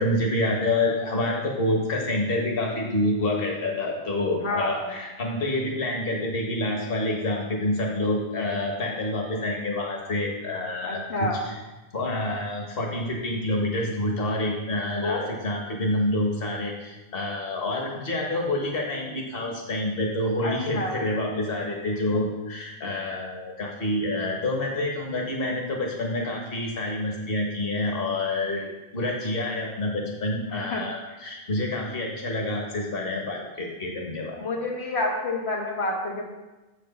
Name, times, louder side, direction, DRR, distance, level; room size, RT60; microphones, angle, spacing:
voice 1, 0.0-11.6 11.9-28.6 28.9-34.4, left 1 dB, 60° left, 0 dB, 1.6 m, -27 dB
voice 2, 4.4-4.9 10.8-11.4 15.0-15.3 20.4-20.9 22.1-22.2 28.5-28.6 30.5-30.8 34.4-36.2, left 2 dB, 85° left, -2 dB, 1.4 m, -29 dB
7.5 x 5.1 x 5.3 m, 1.1 s
omnidirectional pair, 1.1 m